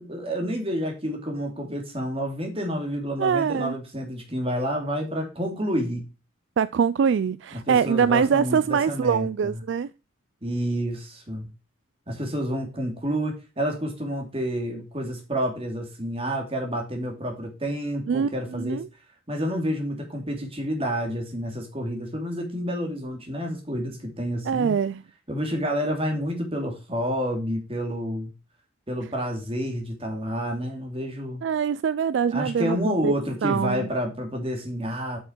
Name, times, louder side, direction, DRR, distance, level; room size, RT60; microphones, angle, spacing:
voice 1, 0.0-6.1 7.5-9.5 10.4-11.5 12.1-18.9 19.3-24.7 25.3-28.3 28.9-31.4 32.3-35.2, equal, 30° right, 2.7 m, -29 dB
voice 2, 3.2-3.7 6.6-9.9 18.1-18.9 24.5-25.0 31.4-33.1 33.4-33.9, right 7 dB, 65° right, 0.3 m, -23 dB
7.8 x 6.3 x 4.6 m
head